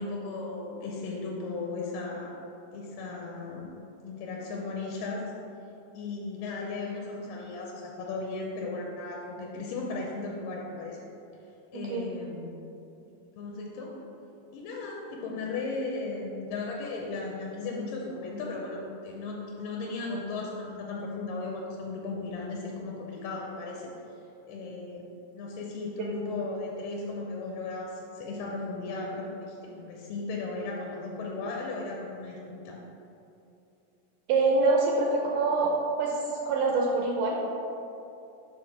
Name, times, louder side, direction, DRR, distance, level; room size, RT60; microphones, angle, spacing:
voice 1, 0.0-2.3 2.7-3.7 4.0-5.2 5.9-11.0 11.7-12.5 13.4-13.9 14.5-23.9 24.5-25.1 25.3-32.8, left 3 dB, 80° left, -2 dB, 2.3 m, -36 dB
voice 2, 11.7-12.1 34.3-35.7 36.0-37.4, right 3 dB, 80° right, -1 dB, 1.9 m, -25 dB
6.5 x 3.5 x 5.7 m, 2.8 s
omnidirectional pair, 4.0 m